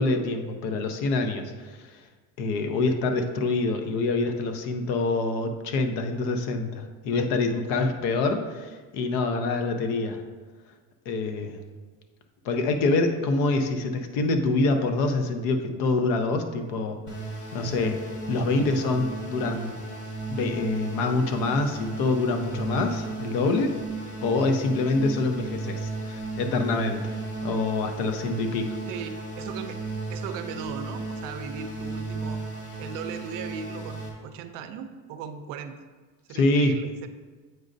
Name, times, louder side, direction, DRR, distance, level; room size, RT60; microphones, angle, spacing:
voice 1, 0.0-1.8 2.4-10.2 11.1-11.6 12.4-17.0 17.5-18.0 18.3-19.7 20.3-23.7 24.2-27.2 27.4-28.7 36.3-36.8, left 3 dB, 70° left, 6 dB, 0.7 m, -26 dB
sound 1, 17.1-34.1, right 3 dB, 50° left, 1.7 m, -35 dB
voice 2, 28.9-29.8 30.1-32.4 32.8-35.7 36.3-37.1, right 7 dB, 60° right, 9 dB, 0.5 m, -37 dB
7.8 x 5.1 x 2.6 m, 1.4 s
cardioid pair, 160°, 37 cm